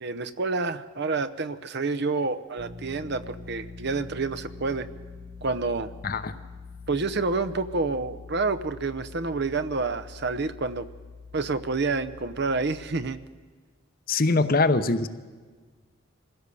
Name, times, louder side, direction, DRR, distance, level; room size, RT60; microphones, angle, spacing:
voice 1, 0.0-4.9 5.4-5.9 6.9-10.9 11.3-13.2, right 3 dB, 50° right, 12 dB, 0.7 m, -28 dB
sound 1, 2.6-13.0, left 4 dB, 70° right, 7.0 m, -44 dB
voice 2, 14.1-15.1, left 3 dB, 45° left, 11 dB, 0.8 m, -22 dB
24.5 x 16.0 x 6.9 m, 1.4 s
head